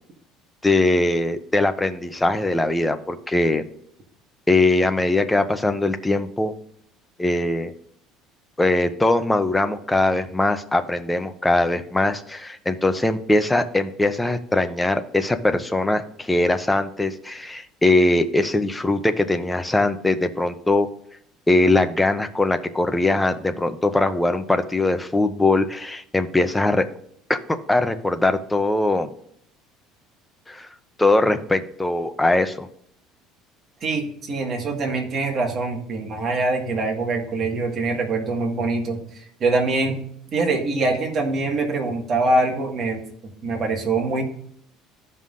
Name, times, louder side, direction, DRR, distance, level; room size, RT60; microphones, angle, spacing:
voice 1, 0.6-3.6 4.5-6.5 7.2-7.7 8.6-20.9 21.5-26.9 27.3-27.4 27.7-29.1 30.5-30.7 31.0-32.7, left 2 dB, 10° left, 9 dB, 0.5 m, -21 dB
voice 2, 33.8-40.0 40.3-43.0 43.4-44.2, right 3 dB, 35° right, 1 dB, 1.7 m, -24 dB
14.0 x 5.5 x 2.5 m, 0.68 s
cardioid pair, 150°, 0 cm